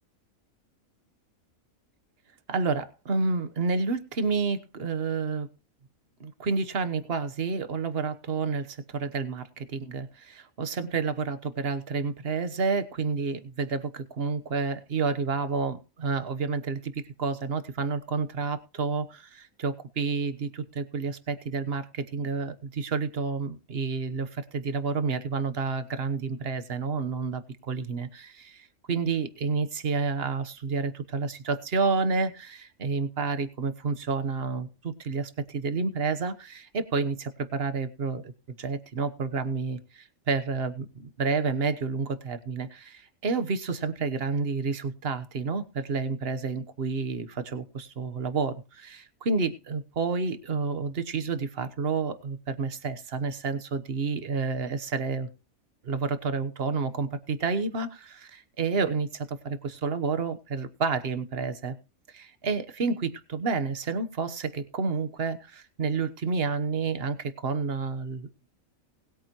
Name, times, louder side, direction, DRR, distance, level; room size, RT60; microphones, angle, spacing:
voice 1, 2.5-5.5 6.2-38.3 38.6-55.3 55.8-61.7 62.1-68.5, right 4 dB, 45° right, 10 dB, 1.3 m, -30 dB
20.0 x 8.9 x 3.1 m, 0.31 s
omnidirectional pair, 1.5 m